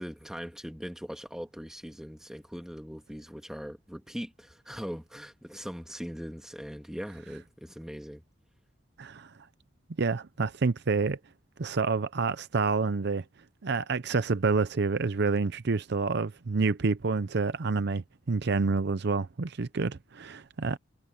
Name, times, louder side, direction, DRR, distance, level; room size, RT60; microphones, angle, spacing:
voice 1, 0.0-8.2, equal, 5° right, 2.0 m, -40 dB
voice 2, 9.0-9.3 10.0-11.2 11.6-13.2 13.6-20.8, right 4 dB, 60° right, 0.6 m, -28 dB
head